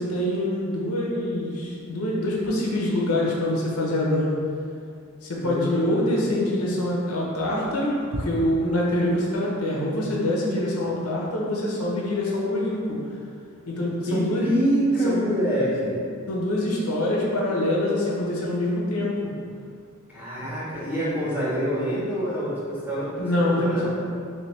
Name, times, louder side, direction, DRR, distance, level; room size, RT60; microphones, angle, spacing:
voice 1, 0.0-4.3 5.2-13.0 13.7-14.5 15.0-15.2 16.3-19.2 23.2-23.9, left 1 dB, 85° left, -4 dB, 0.8 m, -25 dB
voice 2, 5.4-6.3 14.1-16.0 20.1-23.9, right 1 dB, 10° right, -9 dB, 0.9 m, -26 dB
3.3 x 3.1 x 3.2 m, 2.3 s
head